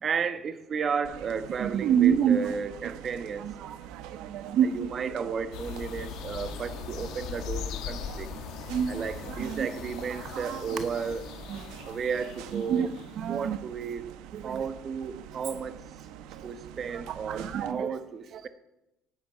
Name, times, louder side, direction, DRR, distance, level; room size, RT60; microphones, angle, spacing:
voice 1, 0.0-3.5 4.6-8.3 8.9-11.2 11.9-12.9 13.3-14.0 14.4-15.8 16.4-18.5, right 6 dB, 35° right, 11 dB, 1.2 m, -33 dB
sound 1, 1.0-17.7, right 10 dB, 85° right, 1.1 m, -45 dB
voice 2, 1.6-2.5 3.4-3.8 4.2-4.9 8.3-8.4 8.7-9.0 9.4-9.5 10.1-10.8 11.5-11.7 12.5-12.9 13.2-13.6 14.3-14.7 16.9-17.9 18.3-18.5, right 8 dB, 60° right, 10 dB, 0.8 m, -28 dB
sound 2, 5.5-13.3, left 8 dB, 70° left, 1.3 m, -40 dB
18.5 x 12.0 x 5.7 m, 0.89 s
cardioid pair, 125°, 0 cm